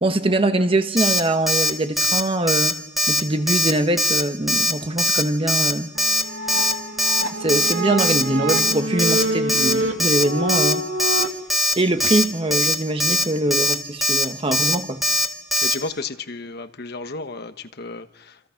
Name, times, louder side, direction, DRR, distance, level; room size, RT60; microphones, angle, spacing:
voice 1, 0.0-2.8 3.1-5.9 7.4-10.8 11.8-15.0, right 1 dB, 30° right, 1.2 m, -23 dB
Alarm, 1.0-1.2 1.5-1.7 2.0-2.2 2.5-2.7 3.0-3.2 3.5-3.7 4.0-4.2 4.5-4.7 5.0-5.2 5.5-5.7 6.0-6.2 6.5-6.7 7.0-7.2 7.5-7.7 8.0-8.2 8.5-8.7 9.0-9.2 9.5-9.7 10.0-10.2 10.5-10.7 11.0-11.2 11.5-11.7 12.0-12.2 12.5-12.7 13.0-13.2 13.5-13.7 14.0-14.2 14.5-14.8 15.0-15.3 15.5-15.7, left 1 dB, ahead, 1.9 m, -20 dB
sound 1, 6.0-11.3, right 1 dB, 85° right, 2.4 m, -26 dB
voice 2, 15.6-18.4, left 3 dB, 60° left, 1.2 m, -33 dB
28.5 x 28.0 x 5.8 m
head